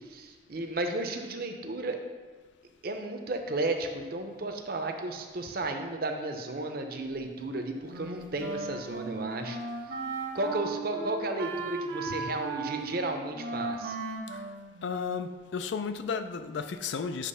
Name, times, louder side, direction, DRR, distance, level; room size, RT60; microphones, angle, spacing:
voice 1, 0.1-2.0 2.8-9.6 10.3-14.0, right 2 dB, 50° right, 0.6 m, -33 dB
Wind instrument woodwind instrument, 7.9-15.4, right 3 dB, 65° right, 0.9 m, -37 dB
voice 2, 14.8-17.3, left 5 dB, 70° left, 0.4 m, -33 dB
8.2 x 3.1 x 5.4 m
head